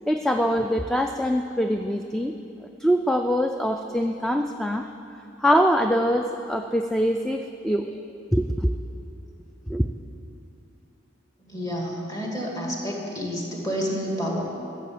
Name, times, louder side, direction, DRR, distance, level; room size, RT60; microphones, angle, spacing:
voice 1, 0.1-2.3 2.8-4.8 5.4-7.9 8.3-8.7 9.7-9.9, equal, ahead, 5 dB, 0.3 m, -23 dB
voice 2, 11.4-14.5, equal, 20° left, -2 dB, 2.1 m, -29 dB
14.5 x 6.8 x 8.5 m, 2.8 s
head